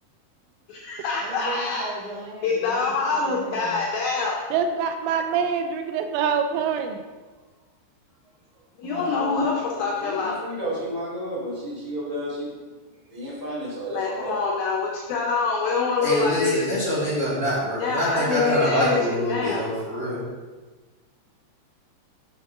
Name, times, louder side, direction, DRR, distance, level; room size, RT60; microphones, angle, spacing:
voice 1, 0.7-1.9 2.4-4.4 8.8-10.4 13.9-16.6 17.8-19.7, left 4 dB, 80° left, -2 dB, 2.1 m, -25 dB
voice 2, 1.2-3.8 8.8-9.1, right 3 dB, 65° right, -1 dB, 2.4 m, -37 dB
voice 3, 4.5-7.0, right 6 dB, 85° right, 6 dB, 2.8 m, -25 dB
voice 4, 8.9-9.4 9.7-12.5 13.1-14.4, equal, 45° left, -7 dB, 0.5 m, -32 dB
voice 5, 16.0-20.2, equal, 45° right, -8 dB, 1.2 m, -25 dB
7.3 x 3.6 x 6.1 m, 1.3 s
omnidirectional pair, 5.1 m